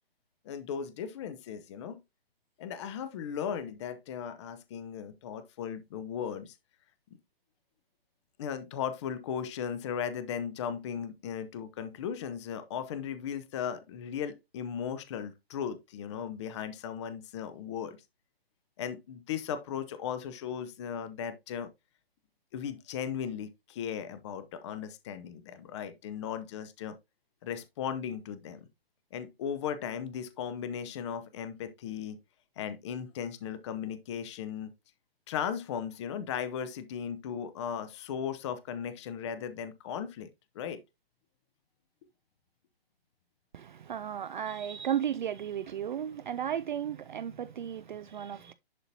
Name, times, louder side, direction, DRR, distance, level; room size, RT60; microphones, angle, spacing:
voice 1, 0.4-2.0 2.6-6.5 8.4-18.0 18.8-21.7 22.5-27.0 27.4-28.7 29.1-32.2 32.6-34.7 35.3-40.3 40.5-40.8, left 8 dB, 30° left, 0.8 m, -37 dB
voice 2, 43.5-48.5, right 9 dB, 50° right, 0.5 m, -34 dB
11.0 x 3.9 x 2.7 m
figure-of-eight pair, 135°, 31 cm